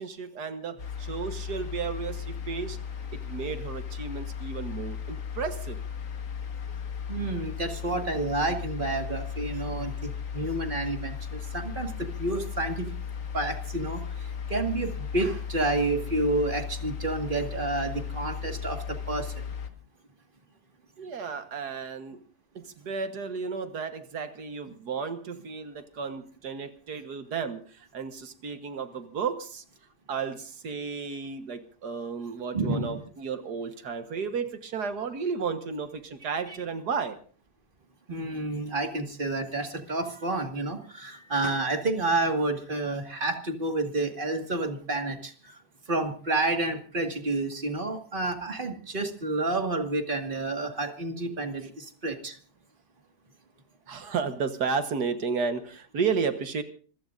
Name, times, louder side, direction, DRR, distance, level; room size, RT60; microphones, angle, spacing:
voice 1, 0.0-2.8 3.1-5.8 21.0-22.2 22.6-29.6 30.1-37.2 53.9-56.6, right 5 dB, 75° right, 8 dB, 1.9 m, -33 dB
sound 1, 0.8-19.7, left 7 dB, 55° left, 1.9 m, -36 dB
voice 2, 7.1-12.9 13.3-19.4 32.5-33.0 36.5-36.6 38.1-45.6 45.9-52.4, right 2 dB, 30° right, 4 dB, 2.1 m, -30 dB
26.5 x 16.0 x 2.6 m, 0.41 s
omnidirectional pair, 1.7 m